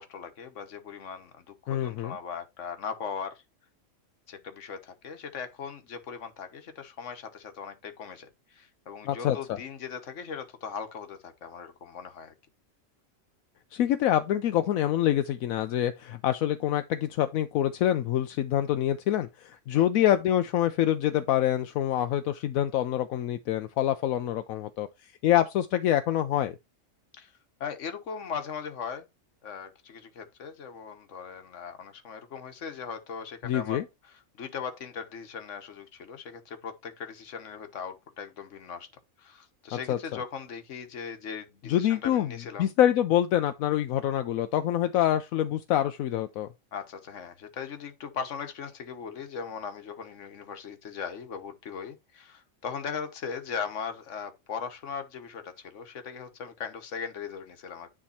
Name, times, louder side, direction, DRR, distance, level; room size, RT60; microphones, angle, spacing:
voice 1, 0.0-3.4 4.3-12.3 19.7-19.9 27.2-27.3 27.6-29.1 29.4-38.9 39.2-42.7 46.7-57.9, left 6 dB, 65° left, 1.4 m, -39 dB
voice 2, 1.7-2.2 9.0-9.6 13.7-24.9 25.2-26.6 33.4-33.8 39.9-40.2 41.7-42.3 42.6-46.5, left 12 dB, 85° left, 1.0 m, -26 dB
10.0 x 3.5 x 4.2 m
omnidirectional pair, 1.4 m